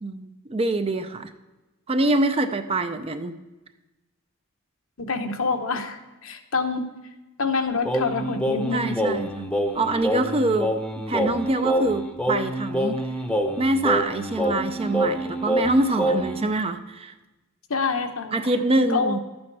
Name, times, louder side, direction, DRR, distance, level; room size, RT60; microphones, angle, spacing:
voice 1, 0.0-1.3 1.9-3.3 8.7-10.7 11.1-13.0 13.6-17.1 18.3-19.2, right 2 dB, 25° right, 9 dB, 0.5 m, -25 dB
voice 2, 5.0-6.9 7.4-9.0 17.7-18.5 18.9-19.2, left 4 dB, 65° left, 6 dB, 1.0 m, -26 dB
Singing, 7.8-16.5, equal, 5° left, 0.8 m, -26 dB
12.0 x 8.7 x 4.7 m, 1.1 s
head